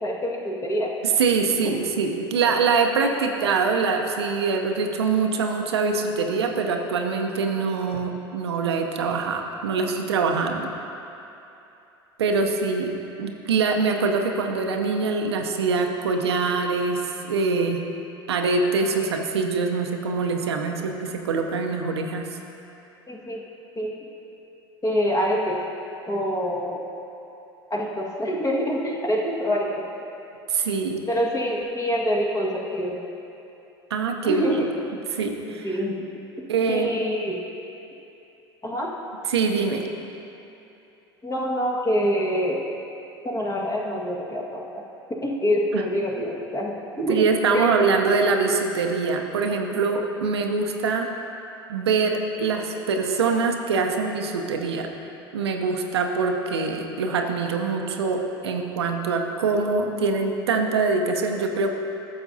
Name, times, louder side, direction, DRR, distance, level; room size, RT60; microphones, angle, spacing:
voice 1, 0.0-0.9 23.1-23.4 23.7-23.9 24.8-25.6 26.1-26.8 27.7-29.7 31.1-33.0 34.2-34.7 35.6-36.0 36.7-37.4 38.6-38.9 41.2-42.6 43.2-44.8 45.2-47.3 47.5-47.7, equal, 25° left, -3 dB, 1.6 m, -25 dB
voice 2, 1.0-10.7 12.2-17.8 18.3-22.3 30.5-31.0 33.9-34.4 35.1-35.7 36.5-36.9 39.3-39.8 45.7-45.8 47.1-51.1 51.7-54.9 55.3-61.7, right 4 dB, 85° right, 3 dB, 0.6 m, -24 dB
12.5 x 7.0 x 2.7 m, 2.9 s
hypercardioid pair, 80°, 13 cm